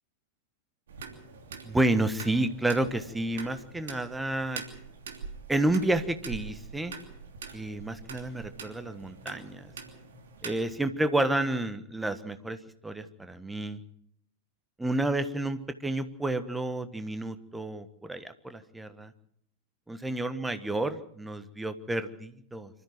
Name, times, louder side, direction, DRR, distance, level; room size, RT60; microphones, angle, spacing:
sound 1, 0.9-10.8, right 5 dB, 65° right, 3.0 m, -44 dB
voice 1, 1.6-4.6 5.5-6.9 7.5-9.7 10.4-12.6 12.8-13.8 14.8-19.1 19.9-22.7, right 1 dB, 5° right, 11 dB, 1.4 m, -30 dB
26.0 x 13.5 x 7.6 m, 0.68 s
figure-of-eight pair, 90°, 0 cm